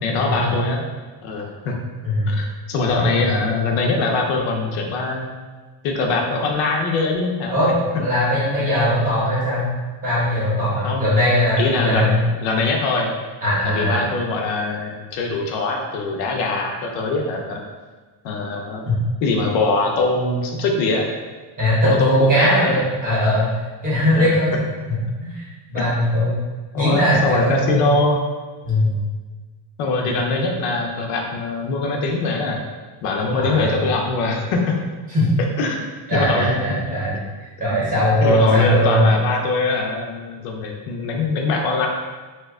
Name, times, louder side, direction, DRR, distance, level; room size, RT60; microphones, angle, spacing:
voice 1, 0.0-0.8 1.2-1.8 2.3-5.3 5.8-7.7 10.8-11.1 11.6-13.1 13.6-17.6 18.2-18.8 19.2-21.1 21.8-22.8 24.1-24.3 25.7-25.8 26.7-28.2 29.8-32.6 33.0-34.8 35.6-35.8 36.1-37.0 37.7-37.9 38.2-41.9, left 3 dB, 70° left, 1 dB, 0.6 m, -22 dB
voice 2, 2.0-2.4 2.8-3.3 7.5-9.7 10.0-12.2 13.4-14.1 21.6-23.5 23.8-24.5 24.9-26.4 26.8-28.0 28.6-29.0 33.4-33.8 35.1-35.3 36.1-37.2 37.6-39.1, equal, 15° right, -8 dB, 0.7 m, -20 dB
2.8 x 2.2 x 3.4 m, 1.3 s
cardioid pair, 180°, 48 cm